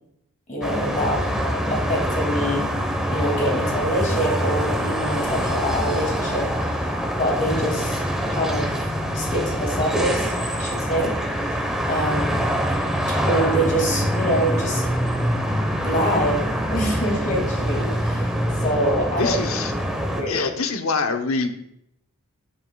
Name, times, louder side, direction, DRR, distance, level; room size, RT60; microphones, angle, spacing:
voice 1, 0.5-2.7 3.1-6.5 7.1-8.7 9.1-11.1 11.5-11.6 11.9-12.3 13.3-14.9 15.8-18.3 18.6-19.4 20.1-20.4, equal, 35° left, 0 dB, 2.4 m, -25 dB
sound 1, 0.6-20.2, equal, 5° right, 1.0 m, -24 dB
voice 2, 1.0-1.6 12.0-12.3 19.2-19.7 20.3-21.5, left 4 dB, 70° left, 6 dB, 0.9 m, -26 dB
10.5 x 9.4 x 2.3 m, 0.76 s
head